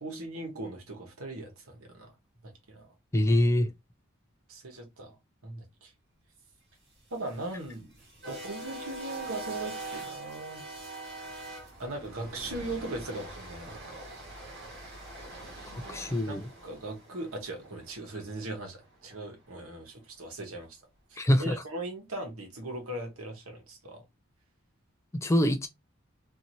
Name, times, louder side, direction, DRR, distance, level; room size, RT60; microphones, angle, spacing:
voice 1, 0.0-2.1 2.4-2.9 4.5-5.2 5.4-5.9 7.1-8.0 8.3-10.6 11.8-14.0 16.2-18.8 19.0-20.8 21.1-24.0, right 2 dB, 90° right, 1.1 m, -39 dB
voice 2, 3.1-3.7 15.9-16.4 21.2-21.6 25.2-25.7, left 1 dB, 15° left, 0.3 m, -24 dB
sound 1, 7.0-19.2, right 2 dB, 55° right, 1.1 m, -43 dB
2.9 x 2.6 x 2.6 m
head